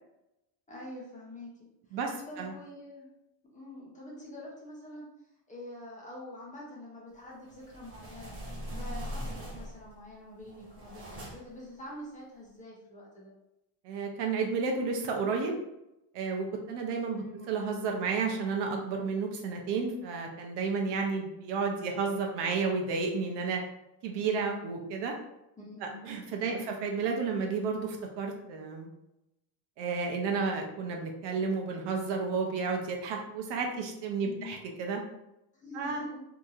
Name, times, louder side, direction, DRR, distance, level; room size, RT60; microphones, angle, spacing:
voice 1, 0.7-1.5 1.9-2.0 2.2-3.1 3.4-5.1 5.5-8.4 8.7-13.3 17.1-17.5 25.6-25.9 26.4-26.8 34.2-34.6 35.5-36.2, left 1 dB, 15° left, -4 dB, 0.7 m, -46 dB
voice 2, 1.9-2.5 13.8-15.5 16.1-23.6 24.0-25.1 25.8-28.9 29.8-35.0 35.7-36.0, right 4 dB, 65° right, 2 dB, 0.6 m, -32 dB
sound 1, 7.4-9.9 10.4-11.6, equal, 30° right, 0.8 m, -41 dB
2.8 x 2.6 x 2.4 m, 0.88 s
cardioid pair, 130°, 46 cm